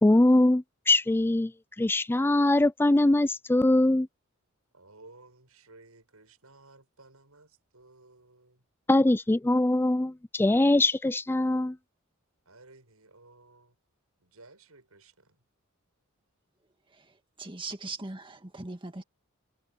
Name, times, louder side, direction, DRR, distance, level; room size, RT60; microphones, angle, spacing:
voice 1, 0.0-1.5 1.8-4.1 8.9-11.8, left 2 dB, 10° left, 0.4 m, -22 dB
voice 2, 4.7-8.6 12.4-13.8 14.2-15.4, right 2 dB, 90° right, 7.7 m, -56 dB
voice 3, 17.4-19.0, right 3 dB, 25° right, 1.9 m, -39 dB
head